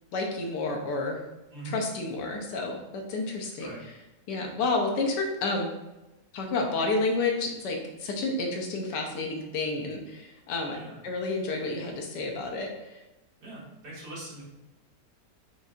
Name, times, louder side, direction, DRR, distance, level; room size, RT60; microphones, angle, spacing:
voice 1, 0.1-1.2 1.6-3.7 4.3-5.7 6.3-10.8 11.0-12.7, left 3 dB, 80° left, 2 dB, 1.4 m, -30 dB
voice 2, 3.4-3.8 10.7-11.0 13.4-14.4, right 3 dB, 70° right, -7 dB, 2.1 m, -42 dB
6.9 x 2.6 x 2.4 m, 1.0 s
omnidirectional pair, 1.8 m